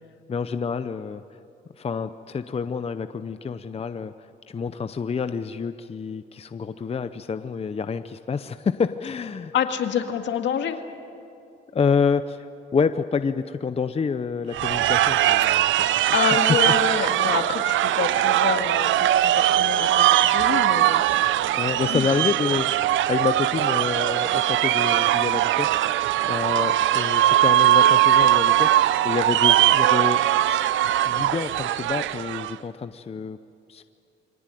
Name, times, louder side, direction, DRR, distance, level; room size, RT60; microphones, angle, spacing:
voice 1, 0.3-1.2 1.8-9.5 11.7-16.7 17.2-17.3 21.5-22.7 23.1-33.4 33.7-33.8, left 5 dB, 30° left, 11 dB, 0.7 m, -28 dB
voice 2, 9.5-10.8 16.1-21.0 21.9-22.1, left 8 dB, 70° left, 6 dB, 1.9 m, -27 dB
sound 1, 14.5-32.5, right 13 dB, 75° right, 0.6 m, -20 dB
24.0 x 18.0 x 9.2 m, 2.5 s
cardioid pair, 90°, 20 cm